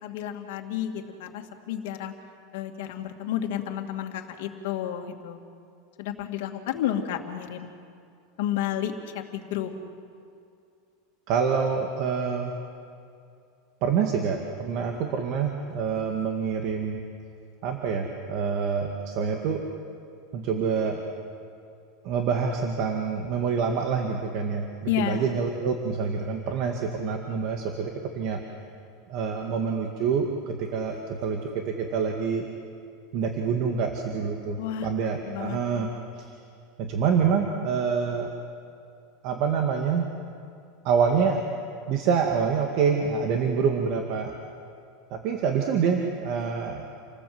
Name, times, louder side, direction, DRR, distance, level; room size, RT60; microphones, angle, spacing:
voice 1, 0.0-2.1 2.5-5.4 6.0-7.7 8.4-9.7 24.9-25.4 34.6-34.9 35.2-35.8, left 10 dB, 65° left, 3 dB, 2.5 m, -31 dB
voice 2, 11.3-12.5 13.8-17.0 17.6-19.6 20.3-21.0 22.0-28.4 29.1-32.5 33.1-35.9 36.2-36.3 36.8-38.3 39.2-40.1 40.8-41.5 41.9-44.3 45.1-46.9, right 6 dB, 45° right, 3 dB, 2.0 m, -26 dB
28.5 x 19.5 x 7.9 m, 2.5 s
supercardioid pair, 160°, 0 cm